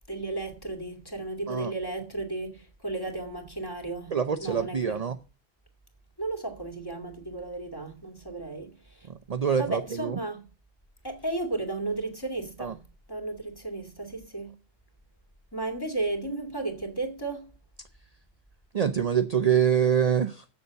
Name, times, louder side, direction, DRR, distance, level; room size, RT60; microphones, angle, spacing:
voice 1, 0.1-5.0 6.2-9.1 9.6-10.4 11.0-12.8 13.1-14.5 15.5-17.5, right 2 dB, 20° left, 2.3 m, -34 dB
voice 2, 4.1-5.2 9.1-10.2 12.6-12.7 18.7-20.6, right 8 dB, 45° right, 0.6 m, -25 dB
8.0 x 6.9 x 8.0 m
omnidirectional pair, 1.1 m